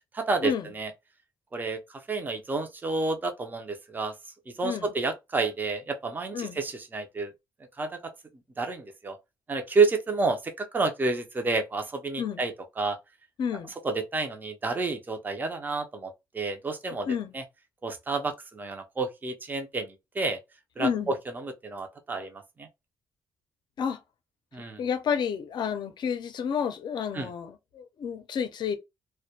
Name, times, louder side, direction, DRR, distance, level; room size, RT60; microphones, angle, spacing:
voice 1, 0.1-0.9 1.5-1.8 2.1-4.1 4.6-7.3 7.8-8.1 8.6-9.2 9.5-13.0 13.8-17.1 17.3-17.4 17.8-20.4 20.8-22.7 24.5-24.8 27.1-27.3, right 3 dB, 20° right, 0.5 m, -30 dB
voice 2, 13.4-13.7 17.1-17.3 20.8-21.1 23.8-24.0 24.8-28.8, left 7 dB, 60° left, 0.5 m, -30 dB
2.1 x 2.1 x 2.8 m
cardioid pair, 105°, 9 cm